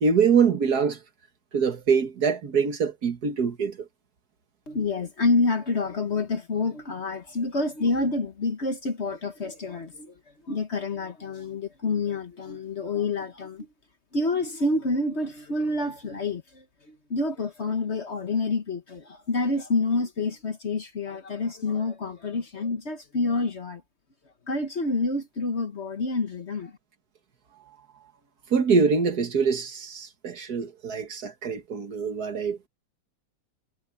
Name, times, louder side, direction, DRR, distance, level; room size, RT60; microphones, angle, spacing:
voice 1, 0.0-1.0 1.5-3.8 28.5-32.7, right 5 dB, 60° right, 2.1 m, -24 dB
voice 2, 4.7-10.1 10.4-13.7 14.1-23.8 24.5-26.7, left 3 dB, 40° left, 1.5 m, -28 dB
omnidirectional pair, 1.9 m